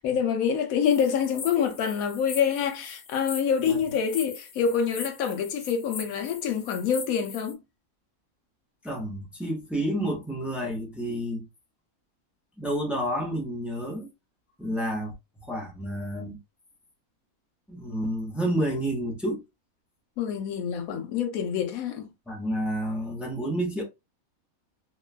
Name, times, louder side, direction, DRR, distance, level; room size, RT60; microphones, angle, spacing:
voice 1, 0.0-7.6 20.2-22.1, left 7 dB, 80° left, 1.0 m, -26 dB
sound 1, 0.8-7.5, left 5 dB, 55° left, 0.7 m, -41 dB
voice 2, 8.8-11.4 12.6-14.1 14.6-15.1 15.4-16.4 17.7-19.4 22.3-23.8, right 1 dB, ahead, 0.3 m, -30 dB
3.0 x 2.2 x 2.3 m
omnidirectional pair, 1.5 m